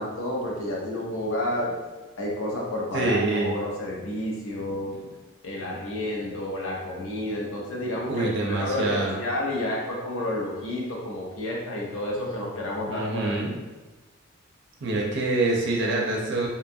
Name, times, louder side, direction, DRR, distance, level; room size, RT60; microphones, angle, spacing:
voice 1, 0.0-1.8 2.2-5.1 5.4-13.4, left 1 dB, 65° left, -3 dB, 0.6 m, -30 dB
voice 2, 2.9-3.6 8.1-9.2 12.9-13.5 14.8-16.5, right 2 dB, 50° right, -2 dB, 0.4 m, -25 dB
2.7 x 2.3 x 2.6 m, 1.2 s
head